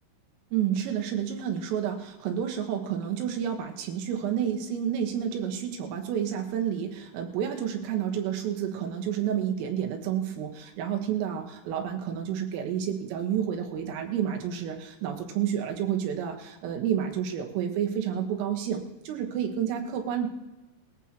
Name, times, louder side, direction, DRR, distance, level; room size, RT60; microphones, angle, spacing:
voice 1, 0.5-20.3, right 9 dB, 90° right, 2 dB, 4.0 m, -30 dB
20.0 x 14.5 x 3.0 m, 1.1 s
omnidirectional pair, 5.7 m